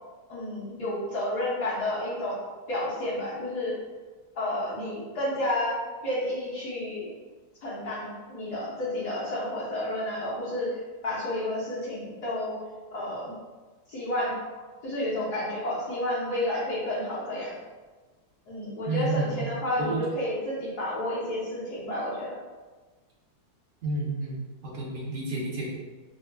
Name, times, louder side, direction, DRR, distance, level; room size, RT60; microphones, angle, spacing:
voice 1, 0.3-2.4 2.7-3.7 4.3-7.1 7.6-12.6 12.9-13.4 13.9-17.5 18.5-22.4, left 1 dB, 60° left, -9 dB, 1.5 m, -31 dB
voice 2, 18.8-19.5 19.8-20.0 23.8-25.8, right 3 dB, 50° right, -6 dB, 0.6 m, -30 dB
5.1 x 2.3 x 2.2 m, 1.3 s
omnidirectional pair, 2.0 m